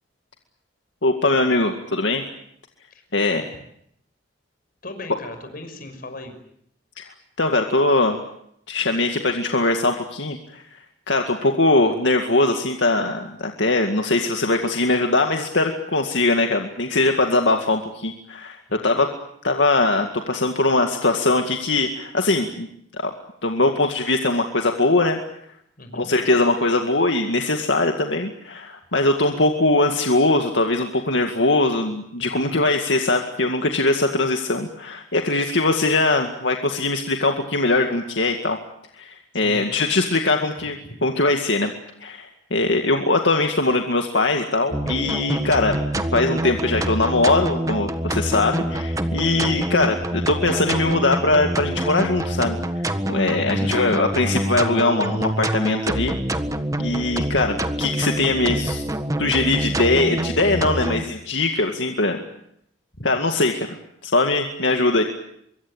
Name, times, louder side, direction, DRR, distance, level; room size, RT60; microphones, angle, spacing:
voice 1, 1.0-2.2 3.1-3.4 7.0-7.1 7.4-8.2 8.7-10.6 11.1-19.1 19.4-22.7 23.0-23.1 23.4-25.2 25.9-38.6 39.0-40.8 41.0-41.7 42.0-56.2 56.8-58.8 59.2-62.2 63.0-63.7 64.0-65.0, left 2 dB, 80° left, 4 dB, 2.1 m, -21 dB
voice 2, 4.8-6.4 18.7-19.0 25.8-26.1 32.2-32.6 39.3-39.7 53.4-53.7 62.9-63.1, left 1 dB, 50° left, 7 dB, 6.0 m, -38 dB
sound 1, 44.7-61.0, right 1 dB, 20° right, 1.6 m, -26 dB
25.5 x 23.0 x 8.9 m, 0.72 s
head